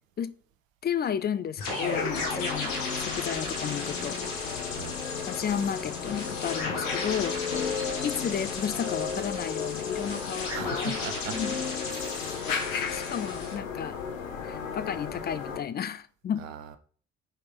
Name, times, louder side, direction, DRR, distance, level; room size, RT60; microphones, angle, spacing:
voice 1, 0.8-4.2 5.3-7.4 8.0-11.0 11.3-11.6 12.5-14.0 14.4-16.4, left 8 dB, 25° left, 0.4 m, -32 dB
sound 1, 1.6-13.5, left 3 dB, 60° left, 2.0 m, -36 dB
Sunday Morning, 1.8-15.6, left 6 dB, 80° left, 0.8 m, -34 dB
voice 2, 10.5-11.4 12.0-12.3 16.4-16.8, right 8 dB, 80° right, 0.6 m, -40 dB
5.2 x 5.0 x 3.8 m
figure-of-eight pair, 45°, 39 cm